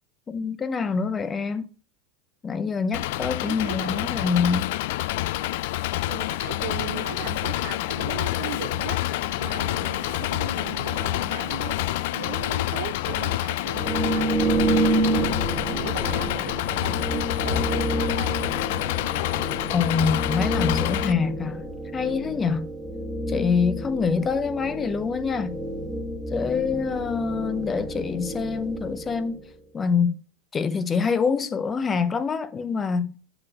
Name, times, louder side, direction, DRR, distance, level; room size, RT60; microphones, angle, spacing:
voice 1, 0.3-1.7 2.4-4.7 19.7-21.6 21.9-22.7 23.3-25.6 26.3-29.4 29.7-30.2 30.5-33.1, left 5 dB, 25° left, 0.6 m, -25 dB
Engine, 2.9-21.1, left 16 dB, 70° left, 0.3 m, -27 dB
voice 2, 3.4-4.3 6.1-14.4 14.6-18.5, right 9 dB, 80° right, 1.2 m, -38 dB
sound 1, 7.5-18.9, right 7 dB, 45° right, 1.7 m, -47 dB
sound 2, 13.7-29.5, right 1 dB, ahead, 1.3 m, -29 dB
7.9 x 5.8 x 3.6 m
hypercardioid pair, 110°, 0 cm